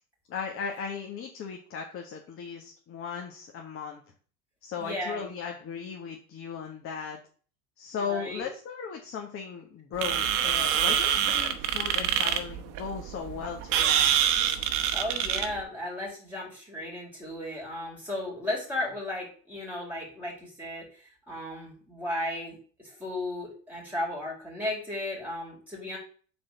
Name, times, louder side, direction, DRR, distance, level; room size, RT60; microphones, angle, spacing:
voice 1, 0.3-4.0 4.6-7.2 7.8-14.1, left 6 dB, 30° left, 2 dB, 1.4 m, -37 dB
voice 2, 4.8-5.3 7.9-8.5 14.9-26.0, left 1 dB, 5° right, -5 dB, 4.3 m, -35 dB
sound 1, 10.0-15.6, right 9 dB, 45° right, 1.2 m, -26 dB
7.9 x 4.3 x 6.8 m, 0.42 s
supercardioid pair, 135°, 46 cm